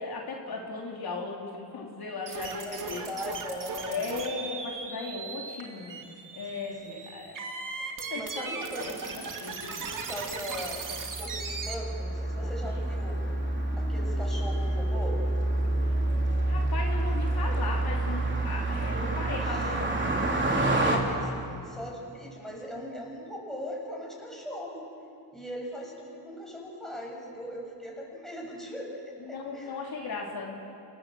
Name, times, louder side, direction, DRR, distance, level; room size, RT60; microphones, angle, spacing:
voice 1, 0.0-3.1 3.9-6.0 6.3-7.3 8.1-8.4 8.8-9.9 12.4-12.5 16.5-20.9 29.2-30.6, left 4 dB, 60° left, -1 dB, 3.3 m, -37 dB
sound 1, 2.3-11.7, right 4 dB, 50° right, 2.5 m, -38 dB
voice 2, 2.6-4.2 6.5-7.1 8.1-9.4 9.8-10.9 11.2-13.3 13.8-15.2 18.9-19.8 20.7-24.9 25.3-28.9 29.2-29.7, equal, ahead, -3 dB, 7.2 m, -40 dB
Car passing by, 10.8-21.0, right 2 dB, 25° right, 3.6 m, -28 dB
sound 2, 12.2-20.8 21.7-22.1, left 3 dB, 35° left, 6.2 m, -47 dB
28.0 x 17.5 x 7.7 m, 2.4 s
cardioid pair, 115°, 41 cm